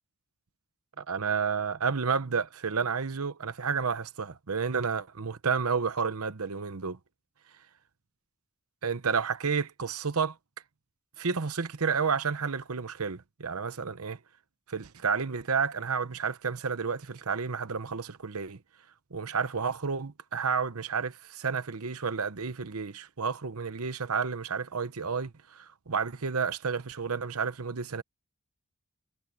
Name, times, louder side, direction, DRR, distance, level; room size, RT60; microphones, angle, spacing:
voice 1, 1.0-7.0 8.8-10.4 11.2-14.2 14.7-18.6 19.1-28.0, right 5 dB, 85° right, 0.9 m, -31 dB
head